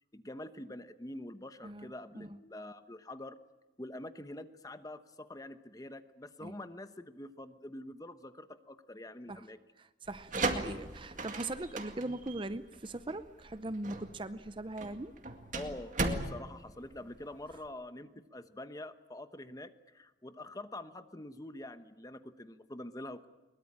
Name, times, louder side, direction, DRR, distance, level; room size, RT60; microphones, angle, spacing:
voice 1, 0.1-3.4 3.8-9.6 15.5-23.3, left 1 dB, 20° left, 11 dB, 1.0 m, -45 dB
voice 2, 1.6-2.4 6.4-6.5 9.3-9.5 9.8-15.1, right 2 dB, 30° right, 13 dB, 0.7 m, -40 dB
sound 1, 10.1-17.7, right 2 dB, 45° right, 2.1 m, -37 dB
22.0 x 22.0 x 8.8 m, 1.2 s
head